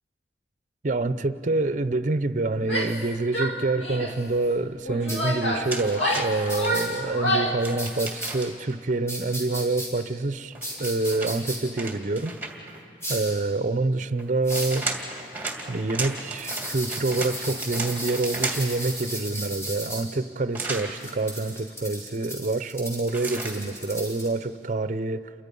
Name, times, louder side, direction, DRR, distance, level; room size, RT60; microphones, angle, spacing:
voice 1, 0.8-12.8 13.1-14.9 15.7-25.3, right 2 dB, 45° right, 0.6 m, -27 dB
Female speech woman speaking / Yell, 2.6-3.1 3.3-4.2 4.8-7.7, equal, 85° left, 2.2 m, -28 dB
sound 1, 5.1-5.2 6.5-6.8 7.8-8.3 9.1-9.9 10.6-11.6 13.0-13.3 14.4-14.8 16.4-20.0 21.0-24.3, equal, 15° left, 5.9 m, -34 dB
sound 2, 5.7-6.7 7.6-8.7 10.5-12.8 14.2-18.8 20.5-20.9 23.1-23.6, right 3 dB, 10° right, 2.3 m, -34 dB
29.0 x 24.0 x 5.4 m
head